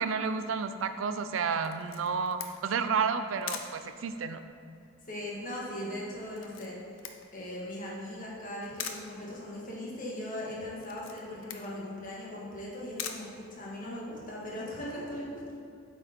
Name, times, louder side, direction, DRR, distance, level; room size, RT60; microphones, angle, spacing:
voice 1, 0.0-4.4, right 5 dB, 70° right, 10 dB, 0.4 m, -31 dB
Camera, 1.6-14.1, left 8 dB, 70° left, 0.6 m, -45 dB
voice 2, 5.0-6.8 7.3-15.4, left 1 dB, 40° left, -5 dB, 1.6 m, -39 dB
7.8 x 4.2 x 4.5 m, 2.5 s
head